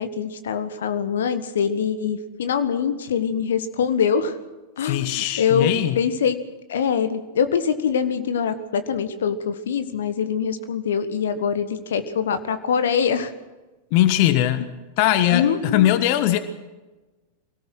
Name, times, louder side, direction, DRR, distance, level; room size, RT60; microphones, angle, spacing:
voice 1, 0.0-4.4 4.8-6.4 6.7-13.3 15.3-15.9, left 7 dB, 60° left, 10 dB, 1.4 m, -24 dB
voice 2, 4.8-6.0 13.9-14.7 15.0-16.4, left 13 dB, 45° left, 12 dB, 1.4 m, -20 dB
25.0 x 18.5 x 6.2 m, 1.1 s
figure-of-eight pair, 90°, 0 cm